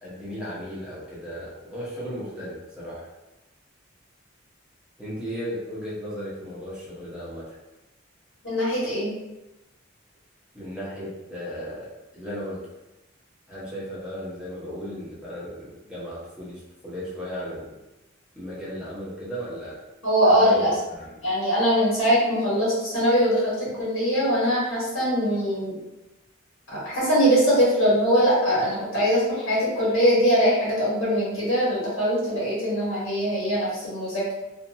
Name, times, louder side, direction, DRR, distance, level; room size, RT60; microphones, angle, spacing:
voice 1, 0.0-3.1 5.0-7.5 10.5-11.9 12.1-12.6 13.5-17.8 18.3-19.8 20.3-21.2, equal, 5° right, -9 dB, 0.8 m, -35 dB
voice 2, 8.4-9.1 20.0-20.7 21.2-25.8 26.7-34.3, equal, 80° left, -8 dB, 1.4 m, -22 dB
2.5 x 2.5 x 2.8 m, 0.99 s
head